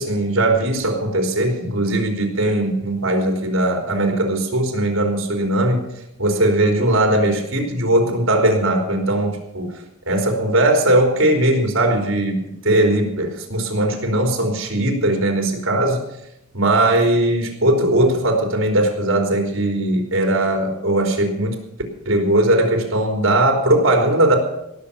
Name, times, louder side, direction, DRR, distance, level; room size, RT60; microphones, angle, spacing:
voice 1, 0.0-5.8 6.2-9.7 10.1-16.0 16.5-21.6 22.1-24.4, right 1 dB, 70° right, 2 dB, 3.6 m, -19 dB
17.5 x 7.1 x 8.5 m, 0.87 s
head